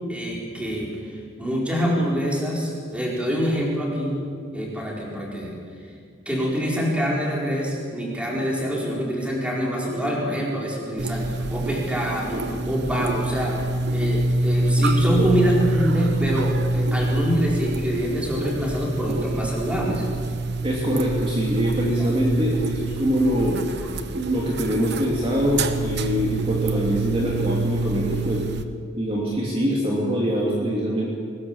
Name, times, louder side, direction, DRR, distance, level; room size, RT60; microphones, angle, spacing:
voice 1, 0.1-0.9 1.4-4.2 4.5-5.5 6.2-13.6 13.9-20.0 22.0-22.1, equal, 5° right, -3 dB, 4.8 m, -25 dB
sound 1, 11.0-28.6, right 2 dB, 55° right, 1.1 m, -26 dB
voice 2, 20.6-23.6 24.1-28.4 29.0-31.1, equal, 25° right, -4 dB, 3.0 m, -24 dB
22.0 x 20.0 x 7.4 m, 2.1 s
head